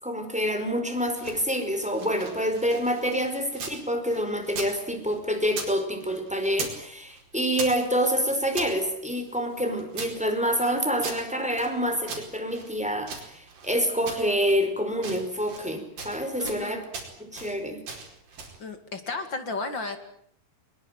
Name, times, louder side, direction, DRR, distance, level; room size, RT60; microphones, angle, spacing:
voice 1, 0.0-16.8 17.2-17.8, equal, ahead, 6 dB, 4.4 m, -27 dB
sound 1, 1.0-3.8 4.1-5.7 6.0-6.8 7.1-8.7 9.3-11.7 12.1-13.7 14.1-14.6 14.9-15.7 16.0-16.6 16.9-17.5 17.9-18.6, right 4 dB, 60° right, 6.4 m, -39 dB
voice 2, 16.4-16.8 18.6-20.0, left 3 dB, 35° left, 8 dB, 2.3 m, -33 dB
22.5 x 22.5 x 9.3 m, 0.69 s
omnidirectional pair, 4.6 m